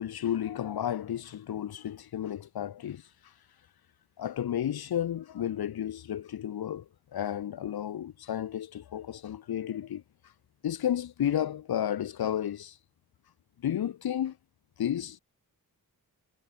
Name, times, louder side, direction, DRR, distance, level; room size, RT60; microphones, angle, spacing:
voice 1, 0.0-3.3 4.2-10.3 10.6-12.8 13.6-14.4 14.8-15.2, left 10 dB, 80° left, 0.9 m, -32 dB
cardioid pair, 55°, 37 cm